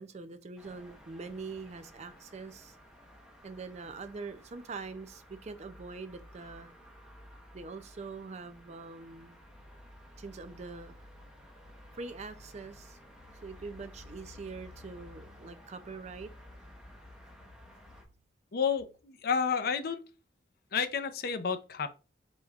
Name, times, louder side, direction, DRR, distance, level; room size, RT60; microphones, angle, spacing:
voice 1, 0.0-2.8 3.4-6.7 7.5-9.4 10.2-10.9 11.9-13.0 13.4-16.3, right 4 dB, 40° right, 0.4 m, -43 dB
sound 1, 0.6-18.0, left 1 dB, 5° right, 1.0 m, -53 dB
voice 2, 18.5-20.0 20.7-21.9, left 6 dB, 55° left, 0.5 m, -30 dB
5.0 x 4.1 x 2.4 m
head